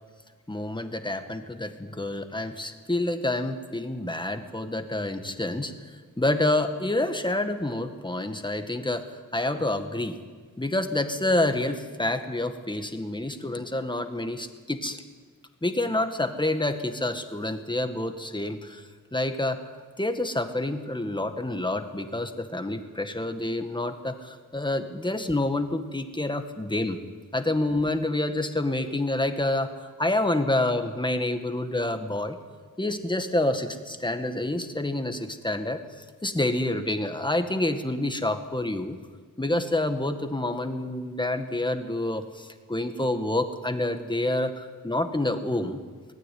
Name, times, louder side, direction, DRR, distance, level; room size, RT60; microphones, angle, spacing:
voice 1, 0.5-5.7 6.2-9.0 9.3-10.2 10.6-15.0 15.6-18.8 19.1-19.6 20.0-27.0 27.3-29.7 30.0-32.4 32.8-35.8 36.2-39.0 39.4-45.8, left 1 dB, 15° left, 7 dB, 1.8 m, -28 dB
23.5 x 19.0 x 9.4 m, 1.5 s
wide cardioid pair, 125°, 34 cm